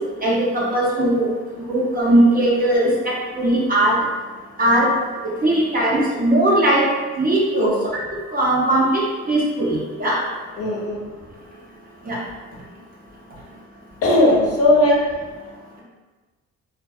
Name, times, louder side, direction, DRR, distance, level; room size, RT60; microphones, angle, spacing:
voice 1, 0.2-1.3 1.7-4.0 4.6-4.9 5.4-6.8 7.2-7.7 8.3-9.0 9.3-10.2 12.0-12.2, right 1 dB, 30° right, -6 dB, 0.9 m, -18 dB
voice 2, 10.6-11.0 14.0-15.0, left 1 dB, 55° left, -3 dB, 0.7 m, -17 dB
2.5 x 2.3 x 2.4 m, 1.3 s
cardioid pair, 75°, 29 cm